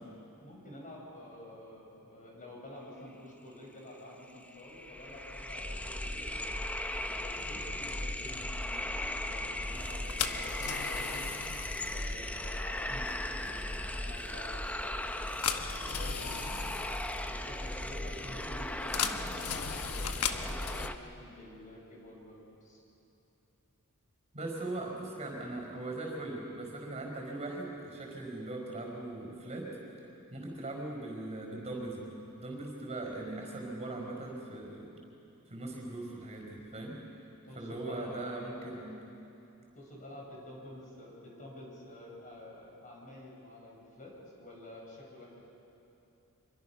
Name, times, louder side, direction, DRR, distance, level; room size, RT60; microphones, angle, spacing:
voice 1, 0.0-6.7 7.2-11.4 11.9-16.6 17.2-22.8 24.8-24.9 37.4-38.8 39.8-45.4, left 1 dB, 35° left, -2 dB, 5.4 m, -49 dB
sound 1, 3.9-4.0 4.3-21.0, left 1 dB, 5° left, 0.7 m, -37 dB
sound 2, 9.8-20.9, left 8 dB, 90° left, 1.1 m, -39 dB
voice 2, 18.2-18.6 24.3-29.7 30.3-34.9 35.5-36.9 37.6-39.0, right 2 dB, 30° right, 1 dB, 4.7 m, -40 dB
26.0 x 23.0 x 5.9 m, 2.8 s
head